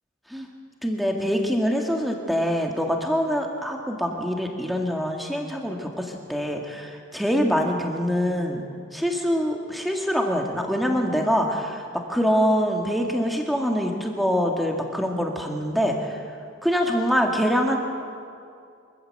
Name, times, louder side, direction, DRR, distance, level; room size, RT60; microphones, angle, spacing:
voice 1, 0.8-8.6 8.9-16.1 16.6-17.8, equal, ahead, 1 dB, 2.0 m, -24 dB
24.0 x 14.5 x 7.9 m, 2.4 s
head